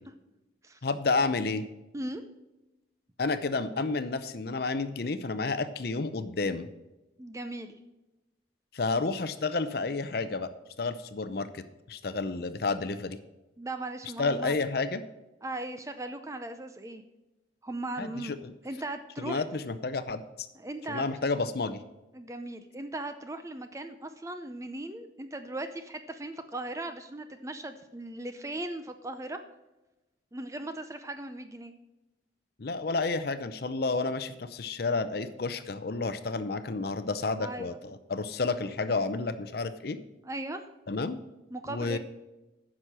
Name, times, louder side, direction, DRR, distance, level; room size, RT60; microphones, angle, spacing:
voice 1, 0.8-1.7 3.2-6.7 8.7-10.5 10.8-13.2 14.2-15.0 18.0-18.5 19.2-20.5 20.9-21.8 32.6-40.0 40.9-41.2 41.7-42.0, left 3 dB, 55° left, 12 dB, 0.6 m, -30 dB
voice 2, 7.2-7.8 13.6-14.6 15.4-17.0 17.6-18.4 18.6-19.4 20.6-21.1 22.1-29.4 30.3-31.7 37.4-37.8 40.2-40.7 41.5-42.0, right 2 dB, 15° right, 8 dB, 0.5 m, -38 dB
10.0 x 6.3 x 6.2 m, 1.0 s
head